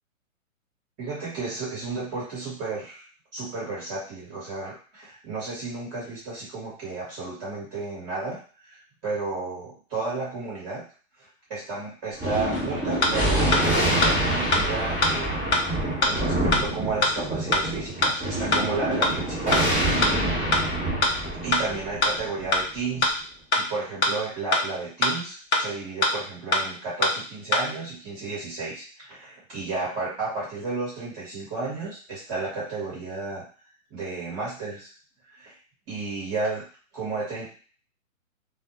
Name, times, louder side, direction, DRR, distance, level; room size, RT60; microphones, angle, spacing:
voice 1, 1.0-3.0 3.3-8.4 8.6-8.8 9.0-10.8 11.5-20.5 21.4-23.1 23.5-33.4 33.9-34.9 35.3-35.5 35.9-36.6 36.9-37.5, right 3 dB, 15° right, -8 dB, 0.9 m, -32 dB
Thunder, 12.2-23.0, right 1 dB, 5° left, 0.5 m, -26 dB
sound 1, 12.5-12.6 13.0-13.1 13.5-13.6 14.0-14.1 14.5-14.6 15.0-15.1 15.5-15.6 16.0-16.1 16.5-16.6 17.0-17.1 17.5-17.6 18.0-18.1 18.5-18.6 19.0-19.1 19.5-19.6 20.0-20.1 20.5-20.6 21.0-21.1 21.5-21.6 22.0-22.1 22.5-22.6 23.0-23.1 23.5-23.6 24.0-24.1 24.5-24.6 25.0-25.1 25.5-25.6 26.0-26.1 26.5-26.6 27.0-27.1 27.5-27.6, left 2 dB, 55° left, 0.7 m, -21 dB
2.1 x 2.1 x 2.7 m, 0.40 s
hypercardioid pair, 155°, 41 cm